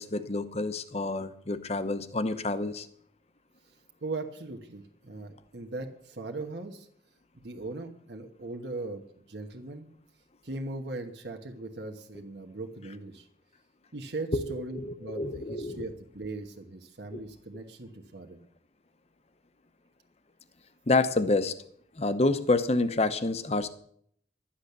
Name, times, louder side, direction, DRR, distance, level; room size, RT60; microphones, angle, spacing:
voice 1, 0.0-2.9 14.3-15.8 17.1-17.2 20.9-21.5 22.0-23.7, left 2 dB, 35° left, 12 dB, 0.9 m, -28 dB
voice 2, 3.6-6.9 7.3-9.9 10.4-13.3 13.9-18.4, right 2 dB, 70° right, 3 dB, 1.2 m, -39 dB
12.0 x 10.0 x 6.8 m, 0.65 s
head